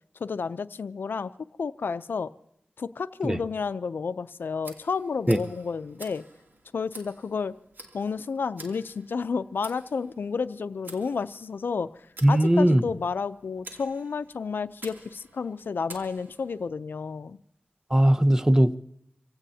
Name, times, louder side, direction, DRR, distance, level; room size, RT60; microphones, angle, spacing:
voice 1, 0.2-1.3 1.6-2.3 2.8-6.3 6.7-7.6 7.9-12.0 12.3-17.4, left 5 dB, 90° left, 14 dB, 0.5 m, -31 dB
Tick, 4.6-16.7, right 2 dB, 75° right, 2.8 m, -50 dB
voice 2, 12.2-12.8 17.9-18.8, right 1 dB, 15° right, 10 dB, 0.8 m, -19 dB
26.0 x 17.0 x 2.8 m, 0.75 s
wide cardioid pair, 55°, 3 cm